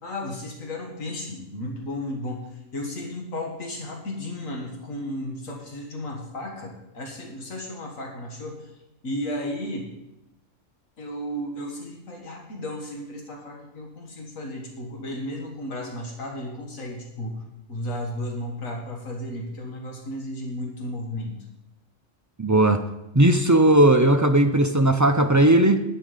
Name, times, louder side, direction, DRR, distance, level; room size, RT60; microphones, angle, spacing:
voice 1, 0.0-8.7 9.0-9.9 11.0-17.4 17.7-21.4, left 1 dB, 85° left, 1 dB, 2.1 m, -34 dB
voice 2, 22.4-22.8 23.1-25.8, right 1 dB, 30° right, 6 dB, 0.3 m, -17 dB
11.5 x 9.0 x 5.1 m, 0.88 s
omnidirectional pair, 1.4 m